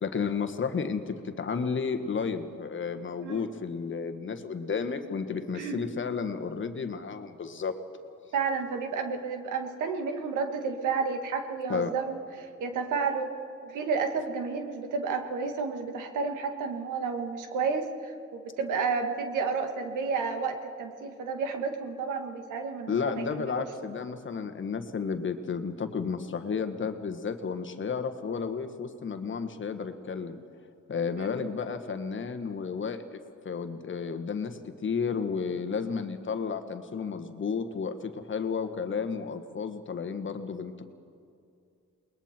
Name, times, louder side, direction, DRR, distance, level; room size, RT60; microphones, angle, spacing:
voice 1, 0.0-7.7 11.7-11.9 22.9-30.4 30.9-33.2 33.4-40.8, left 5 dB, 40° left, 7 dB, 1.5 m, -32 dB
voice 2, 8.3-13.3 13.6-23.7 31.2-31.3, right 5 dB, 85° right, 5 dB, 1.9 m, -31 dB
28.0 x 21.0 x 4.5 m, 2.5 s
cardioid pair, 90°, 30 cm